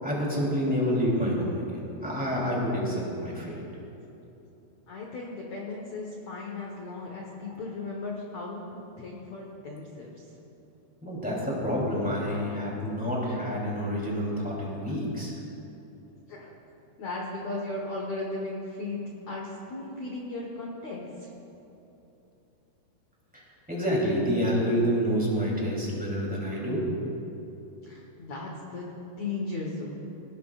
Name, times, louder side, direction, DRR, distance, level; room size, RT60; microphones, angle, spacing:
voice 1, 0.0-3.6 11.0-15.3 23.3-23.4 23.7-26.9, equal, ahead, -5 dB, 2.3 m, -28 dB
voice 2, 4.9-10.3 16.3-16.5 17.0-21.3 27.8-30.0, left 2 dB, 70° left, -2 dB, 1.6 m, -36 dB
20.0 x 18.5 x 2.5 m, 2.9 s
omnidirectional pair, 5.4 m